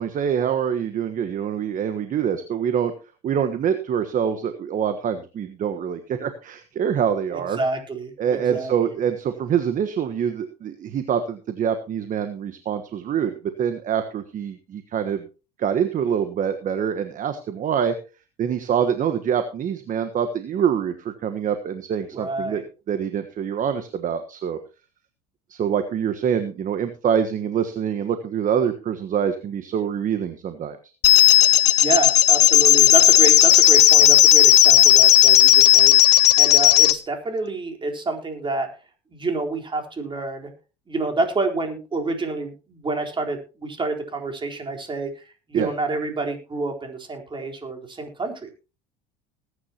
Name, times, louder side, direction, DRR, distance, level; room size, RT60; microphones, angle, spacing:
voice 1, 0.0-2.9 3.2-7.6 8.2-15.2 15.6-17.9 18.4-24.6 25.5-30.8 45.5-45.7, right 8 dB, 40° right, 9 dB, 1.4 m, -25 dB
voice 2, 7.3-8.9 22.1-22.6 31.5-38.7 39.1-40.5 40.9-48.5, right 3 dB, 25° right, 3 dB, 4.1 m, -28 dB
sound 1, 31.0-37.0, left 14 dB, 90° left, 0.9 m, -14 dB
20.0 x 9.8 x 3.0 m, 0.32 s
hypercardioid pair, 85°, 20 cm